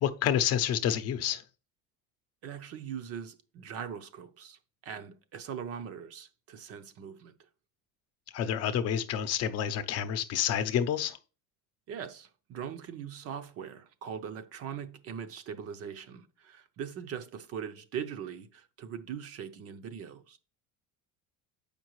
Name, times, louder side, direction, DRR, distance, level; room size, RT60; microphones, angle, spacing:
voice 1, 0.0-1.4 8.3-11.2, left 9 dB, 50° left, 0.7 m, -29 dB
voice 2, 2.4-7.3 11.9-20.4, right 8 dB, 45° right, 0.7 m, -41 dB
7.2 x 5.2 x 3.0 m
cardioid pair, 135°, 32 cm